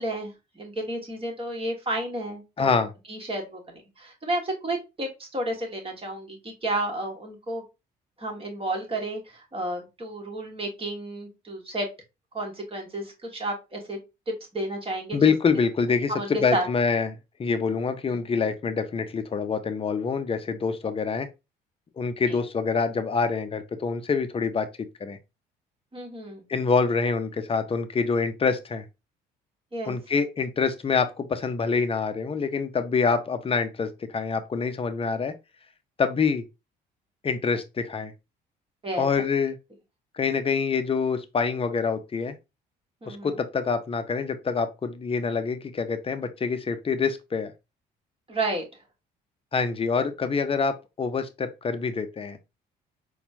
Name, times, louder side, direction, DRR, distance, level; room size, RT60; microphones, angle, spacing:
voice 1, 0.0-2.7 3.1-7.6 8.2-11.9 12.3-14.0 14.3-15.3 16.1-16.6 18.1-18.2 22.3-22.4 25.9-26.4 29.7-29.9 38.8-39.1 43.0-43.4 48.3-48.6, right 1 dB, 25° right, 1.5 m, -31 dB
voice 2, 2.6-2.9 15.1-21.3 22.0-24.7 25.0-25.2 26.5-28.8 29.9-35.3 36.0-36.4 37.2-38.1 39.0-39.6 40.1-42.4 43.1-47.5 49.5-52.4, left 5 dB, 25° left, 0.6 m, -26 dB
4.2 x 2.3 x 2.6 m
supercardioid pair, 65°, 21 cm